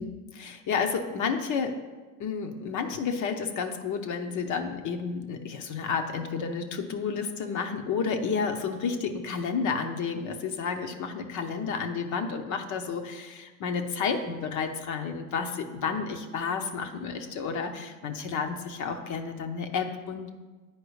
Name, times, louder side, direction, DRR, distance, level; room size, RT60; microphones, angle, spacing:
voice 1, 0.0-1.8 2.2-20.3, left 5 dB, 45° left, 6 dB, 0.8 m, -31 dB
9.4 x 4.7 x 3.1 m, 1.3 s
hypercardioid pair, 75°, 42 cm